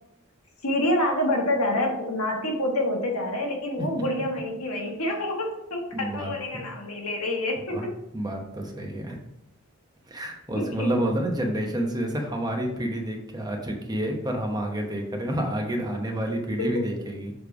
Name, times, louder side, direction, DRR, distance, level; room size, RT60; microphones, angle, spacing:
voice 1, 0.6-7.9 10.5-10.9 16.6-16.8, left 1 dB, 80° left, 1 dB, 1.4 m, -27 dB
voice 2, 5.9-6.3 7.7-7.9 8.1-9.2 10.1-17.3, right 1 dB, 20° right, 1 dB, 0.9 m, -29 dB
6.9 x 3.3 x 4.8 m, 0.83 s
head